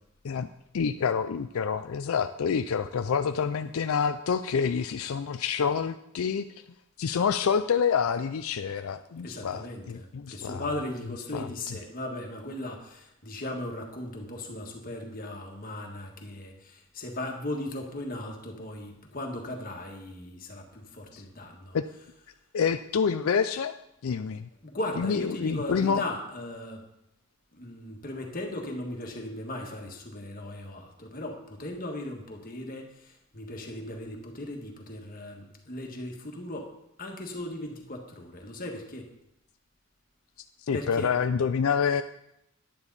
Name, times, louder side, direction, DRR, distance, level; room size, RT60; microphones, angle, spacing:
voice 1, 0.7-6.4 7.0-10.7 11.3-11.5 21.1-21.2 21.7-21.8 22.5-23.7 24.0-24.5 25.0-26.0 40.7-42.0, left 6 dB, 80° left, 9 dB, 0.4 m, -27 dB
voice 2, 9.2-21.8 24.6-26.8 27.5-36.7 37.0-39.1 40.7-41.1, left 1 dB, 40° left, 2 dB, 1.6 m, -37 dB
10.0 x 9.8 x 4.1 m, 0.81 s
head